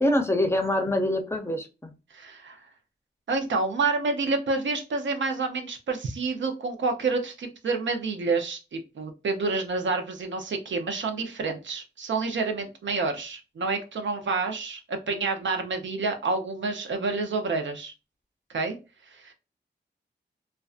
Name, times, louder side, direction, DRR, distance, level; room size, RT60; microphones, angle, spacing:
voice 1, 0.0-1.9, left 1 dB, 15° left, 4 dB, 0.5 m, -25 dB
voice 2, 2.1-2.6 3.3-17.9 18.5-18.8 19.2-19.3, right 3 dB, 75° right, 6 dB, 0.6 m, -28 dB
2.5 x 2.2 x 2.4 m, 0.29 s
wide cardioid pair, 75°, 19 cm